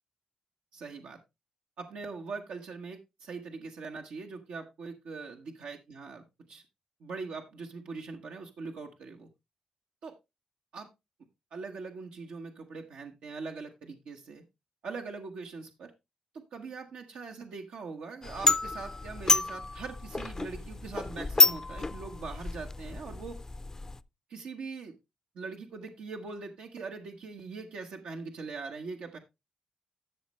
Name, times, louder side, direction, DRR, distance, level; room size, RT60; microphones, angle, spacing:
voice 1, 0.7-1.2 1.8-6.6 7.0-9.3 10.0-10.2 10.7-10.9 11.5-14.4 14.8-15.9 16.3-23.4 24.3-25.0 25.3-29.2, right 4 dB, 85° right, 2 dB, 1.3 m, -42 dB
sound 1, 18.2-24.0, left 3 dB, 25° left, 0.5 m, -29 dB
12.5 x 6.4 x 3.2 m, 0.23 s
cardioid pair, 80°, 2 cm